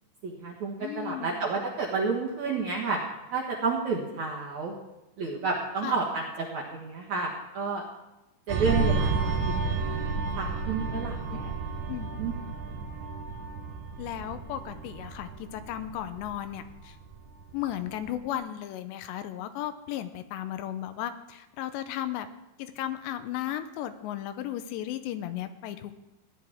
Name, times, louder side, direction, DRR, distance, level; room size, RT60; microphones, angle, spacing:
voice 1, 0.2-3.0 3.3-4.8 5.2-7.8 8.5-9.9 10.3-11.5 12.2-12.3, right 4 dB, 60° right, -3 dB, 2.0 m, -31 dB
voice 2, 0.8-1.5 5.8-6.0 11.9-12.1 14.0-17.0 17.5-22.3 22.6-26.0, left 12 dB, 80° left, 10 dB, 2.8 m, -35 dB
sound 1, 8.5-17.5 17.9-18.1, right 4 dB, 80° right, 1.8 m, -31 dB
17.0 x 10.5 x 3.6 m, 0.96 s
omnidirectional pair, 5.2 m